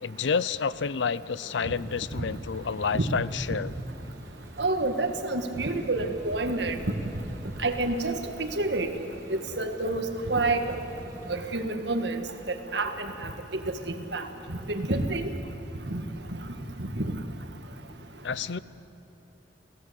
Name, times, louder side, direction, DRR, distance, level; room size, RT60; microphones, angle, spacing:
voice 1, 0.0-3.7 18.2-18.6, left 5 dB, 80° left, 18 dB, 0.5 m, -29 dB
sound 1, 1.4-11.5, equal, 20° right, 2.4 m, -47 dB
voice 2, 4.6-6.8 7.6-8.9 9.3-10.8 11.3-12.2 12.7-12.9 13.2-13.3 14.1-14.2 14.7-15.3 15.9-16.0 16.8-17.1, right 2 dB, 70° right, 6 dB, 1.7 m, -28 dB
29.5 x 16.5 x 8.2 m, 3.0 s
head